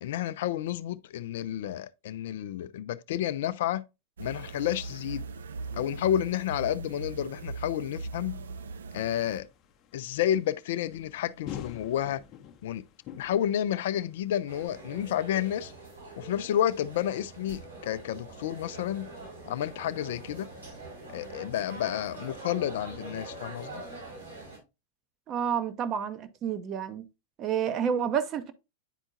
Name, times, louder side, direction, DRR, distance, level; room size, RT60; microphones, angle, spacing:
voice 1, 0.0-3.8 4.2-5.2 5.7-8.4 8.9-9.5 9.9-12.2 12.6-12.8 13.1-15.7 16.2-19.1 19.5-20.5 21.1-23.8, left 11 dB, 55° left, 0.3 m, -30 dB
sound 1, 4.2-9.4, right 3 dB, 65° right, 0.5 m, -40 dB
sound 2, 9.3-14.7, left 9 dB, 35° left, 0.7 m, -46 dB
sound 3, 14.5-24.6, right 2 dB, 85° right, 4.0 m, -44 dB
voice 2, 25.3-27.0 27.4-28.5, right 8 dB, 30° right, 0.7 m, -29 dB
9.8 x 4.4 x 2.5 m
figure-of-eight pair, 90°, 0 cm